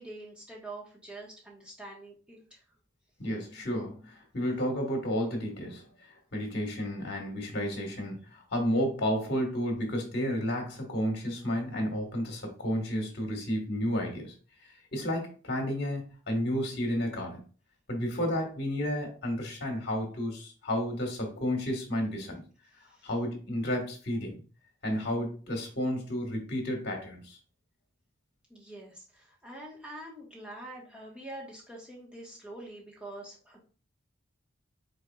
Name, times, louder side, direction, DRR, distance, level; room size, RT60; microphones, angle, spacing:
voice 1, 0.0-2.6 22.8-23.1 28.5-33.6, right 1 dB, 5° right, -4 dB, 1.3 m, -45 dB
voice 2, 3.2-14.3 14.6-17.4 17.9-22.4 23.0-24.4 24.8-27.4, equal, 50° left, 2 dB, 1.5 m, -32 dB
4.7 x 4.5 x 2.3 m, 0.37 s
head